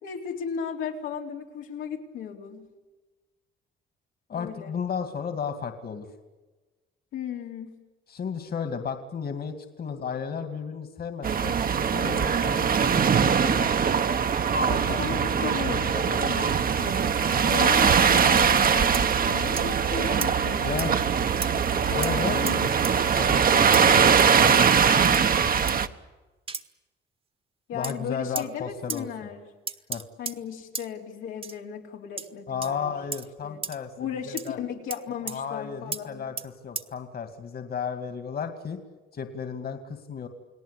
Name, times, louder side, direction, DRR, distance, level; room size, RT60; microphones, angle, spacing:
voice 1, 0.0-2.7 4.4-4.7 7.1-7.7 14.7-17.2 17.5-22.7 27.7-29.4 30.2-32.9 33.4-33.6 34.0-36.3, left 7 dB, 90° left, 1 dB, 3.9 m, -36 dB
voice 2, 4.3-6.1 8.1-11.5 11.9-13.7 14.6-15.4 15.7-16.2 17.3-17.5 20.6-20.9 21.8-22.4 23.2-25.5 27.7-29.1 29.9-30.0 32.5-34.6 35.2-38.8 39.1-40.3, left 6 dB, 50° left, 7 dB, 2.4 m, -34 dB
sound 1, 11.2-25.9, right 7 dB, 45° right, 1.2 m, -22 dB
sound 2, 18.4-18.5 18.9-19.1 19.6-19.7 20.2-20.3 20.8-20.9 21.4-21.5 22.0-22.1 22.5-23.0 23.7-23.8 24.5-24.6 25.1-25.3 25.7-25.9 26.5-26.6 27.8-27.9 28.3-28.5 28.9-29.0 29.7-30.4 30.7-30.9 31.4-31.6 32.2-32.3 32.6-32.7 33.1-33.3 33.6-33.8 34.4-34.5 34.9-35.0 35.3-35.4 35.9-36.0 36.4-36.5 36.7-36.9, right 4 dB, 30° right, 1.4 m, -34 dB
29.5 x 19.0 x 8.5 m, 1.2 s
cardioid pair, 90°, 20 cm